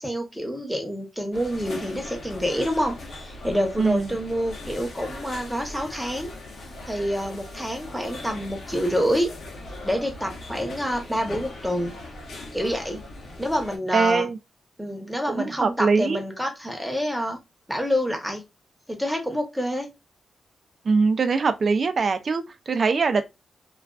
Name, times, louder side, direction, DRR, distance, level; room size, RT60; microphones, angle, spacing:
voice 1, 0.0-6.3 6.9-9.3 9.8-11.9 12.5-13.0 13.4-14.3 14.8-17.4 17.7-18.4 18.9-19.9, equal, ahead, 0.8 m, -27 dB
sound 1, 1.3-13.8, left 2 dB, 70° left, 0.8 m, -39 dB
voice 2, 3.8-4.2 13.9-14.4 15.3-16.2 20.8-23.3, right 4 dB, 50° right, 0.4 m, -22 dB
2.3 x 2.3 x 2.3 m
cardioid pair, 85°, 0 cm